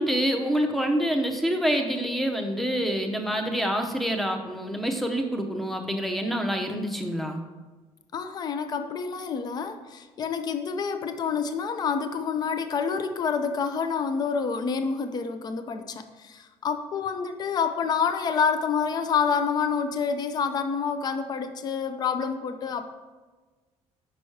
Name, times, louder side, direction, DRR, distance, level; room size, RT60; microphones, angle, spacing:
voice 1, 0.0-7.4, equal, ahead, 4 dB, 0.7 m, -26 dB
voice 2, 8.1-22.9, left 6 dB, 40° left, 8 dB, 0.5 m, -28 dB
6.1 x 5.4 x 4.6 m, 1.3 s
cardioid pair, 140°, 11 cm